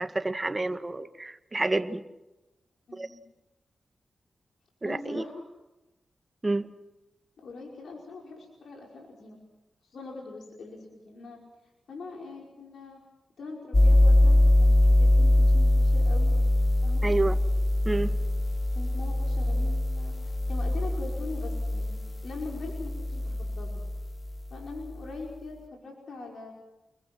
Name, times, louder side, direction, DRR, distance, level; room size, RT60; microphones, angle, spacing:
voice 1, 0.0-2.0 3.0-3.1 4.8-5.2 6.4-6.7 17.0-17.4 17.9-18.2, right 2 dB, 25° right, 8 dB, 1.9 m, -29 dB
voice 2, 2.9-3.2 4.8-5.4 7.4-9.4 9.8-11.4 11.9-13.0 13.4-16.4 16.8-17.2 18.7-23.9 24.5-26.5, left 3 dB, 80° left, -1 dB, 5.4 m, -42 dB
sound 1, 13.7-24.4, left 1 dB, 30° left, 0.8 m, -23 dB
30.0 x 22.5 x 6.2 m, 1.0 s
cardioid pair, 70°, 0 cm